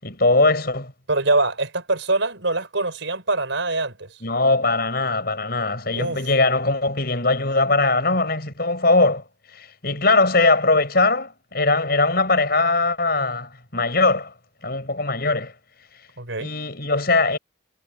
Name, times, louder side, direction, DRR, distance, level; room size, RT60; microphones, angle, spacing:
voice 1, 0.0-0.9 4.2-9.2 9.5-14.3 14.6-15.5 16.4-17.4, left 3 dB, 50° left, 5.7 m, -20 dB
voice 2, 1.1-4.2 5.9-6.2 16.2-16.5, right 2 dB, 75° right, 4.4 m, -24 dB
head